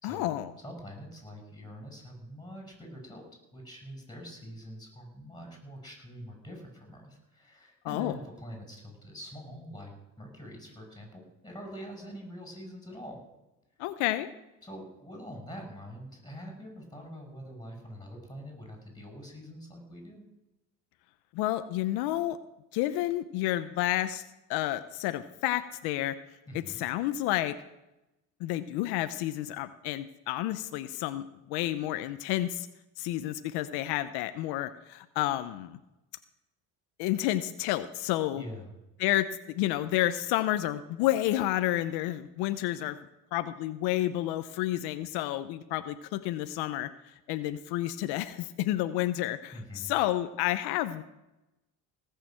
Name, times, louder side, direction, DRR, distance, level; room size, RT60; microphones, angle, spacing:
voice 1, 0.0-0.5 7.9-8.2 13.8-14.3 21.3-22.4 22.7-24.2 24.5-26.1 26.5-27.5 28.4-32.7 33.0-35.8 37.0-38.4 39.0-43.0 43.3-51.0, left 14 dB, 85° left, 11 dB, 0.8 m, -30 dB
voice 2, 0.6-3.2 3.5-13.2 14.6-20.2 26.5-26.8 38.4-38.7 49.5-49.9, equal, 10° left, 3 dB, 6.9 m, -45 dB
17.5 x 6.8 x 7.5 m, 0.95 s
supercardioid pair, 95°, 38 cm